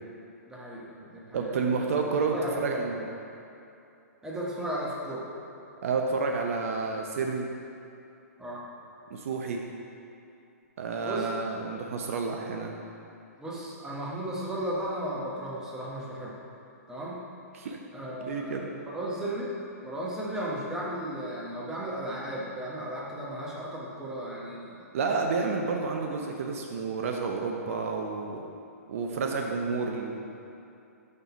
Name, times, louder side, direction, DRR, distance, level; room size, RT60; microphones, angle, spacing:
voice 1, 0.5-3.0 4.2-5.3 8.4-8.6 11.0-11.3 13.4-16.4 16.9-17.2 17.9-25.2, right 1 dB, 5° right, -5 dB, 1.1 m, -35 dB
voice 2, 1.3-3.0 5.8-7.5 9.1-9.6 10.8-12.8 17.5-17.8 18.2-18.7 24.9-28.4 28.9-30.2, right 4 dB, 60° right, 2 dB, 0.5 m, -30 dB
5.4 x 4.0 x 5.7 m, 2.7 s
hypercardioid pair, 120°, 9 cm